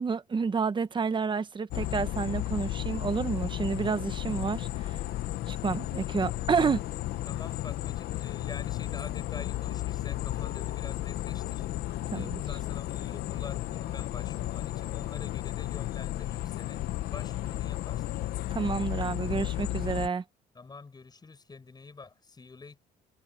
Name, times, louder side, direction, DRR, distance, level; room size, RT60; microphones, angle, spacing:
voice 1, 0.0-4.7 5.5-6.8 12.1-12.4 18.5-20.2, right 5 dB, 30° right, 1.2 m, -29 dB
sound 1, 1.7-20.1, left 14 dB, 70° left, 1.2 m, -33 dB
voice 2, 7.2-16.8 17.1-18.2 20.5-22.8, left 4 dB, 25° left, 7.5 m, -47 dB
cardioid pair, 110°, 17 cm